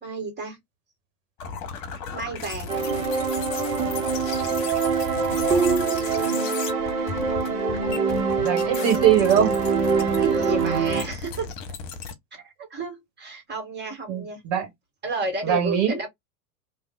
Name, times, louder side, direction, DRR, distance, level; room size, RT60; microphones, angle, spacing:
voice 1, 0.0-0.6 2.1-2.7 10.2-11.5 12.3-14.4 15.0-16.1, right 3 dB, 20° right, 1.9 m, -32 dB
sound 1, 1.4-12.1, left 5 dB, 45° left, 1.1 m, -35 dB
sound 2, 2.7-11.0, right 5 dB, 65° right, 1.2 m, -24 dB
voice 2, 8.4-9.5 14.1-14.7 15.4-16.0, right 9 dB, 45° right, 1.6 m, -21 dB
3.5 x 2.6 x 2.5 m
figure-of-eight pair, 90°, 46 cm